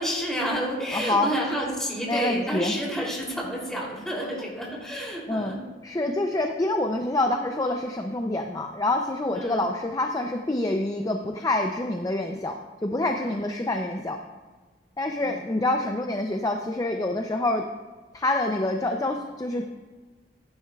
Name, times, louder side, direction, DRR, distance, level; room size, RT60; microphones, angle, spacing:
voice 1, 0.0-5.6 9.3-9.7 13.2-13.4 15.2-15.5, equal, 5° left, -4 dB, 3.0 m, -30 dB
voice 2, 0.9-1.3 2.1-2.8 4.2-4.4 5.3-14.2 15.0-17.6 18.1-19.6, left 2 dB, 20° left, 3 dB, 0.5 m, -27 dB
15.0 x 9.7 x 2.4 m, 1.4 s
head